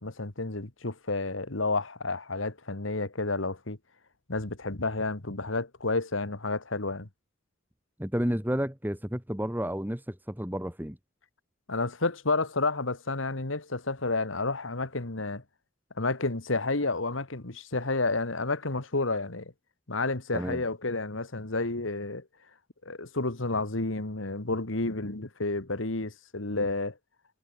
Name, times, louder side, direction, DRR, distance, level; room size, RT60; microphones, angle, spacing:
voice 1, 0.0-3.8 4.3-7.1 11.7-15.4 16.0-19.5 19.9-22.2 22.9-26.9, left 3 dB, 85° left, 2.1 m, -30 dB
voice 2, 8.0-11.0 20.3-20.6, equal, 10° right, 2.2 m, -31 dB
head